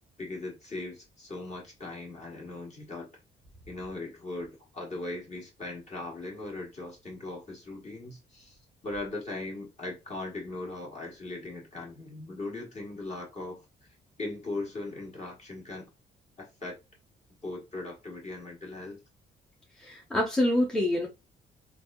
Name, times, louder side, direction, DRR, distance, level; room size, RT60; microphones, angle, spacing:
voice 1, 0.2-3.1 3.7-8.6 8.8-13.6 14.2-15.9 16.4-16.8 17.4-19.0, left 2 dB, 35° left, 1.5 m, -39 dB
voice 2, 19.8-21.1, left 1 dB, 5° left, 0.8 m, -26 dB
3.4 x 2.5 x 2.2 m
cardioid pair, 90°, 20 cm